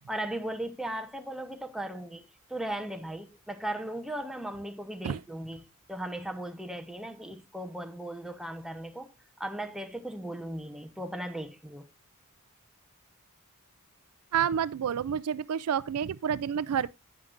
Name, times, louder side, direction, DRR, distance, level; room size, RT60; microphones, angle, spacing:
voice 1, 0.0-2.2 2.5-9.1 9.4-11.9, right 1 dB, ahead, 0.9 m, -37 dB
voice 2, 14.3-16.9, right 8 dB, 85° right, 0.4 m, -29 dB
9.4 x 9.4 x 2.5 m
head